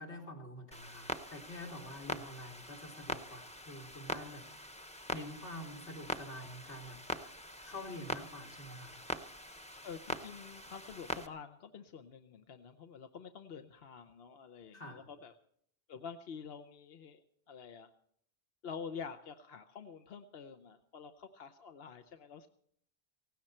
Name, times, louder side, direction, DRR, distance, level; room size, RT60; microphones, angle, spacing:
voice 1, 0.0-4.7 5.1-7.0 7.6-9.0 14.7-15.0, left 1 dB, 85° left, -2 dB, 4.0 m, -47 dB
Clock, 0.7-11.3, equal, 5° left, 0.7 m, -43 dB
voice 2, 9.8-15.3 15.9-17.9 18.6-22.5, left 6 dB, 65° left, 7 dB, 1.0 m, -48 dB
17.5 x 16.5 x 4.4 m, 0.67 s
omnidirectional pair, 1.1 m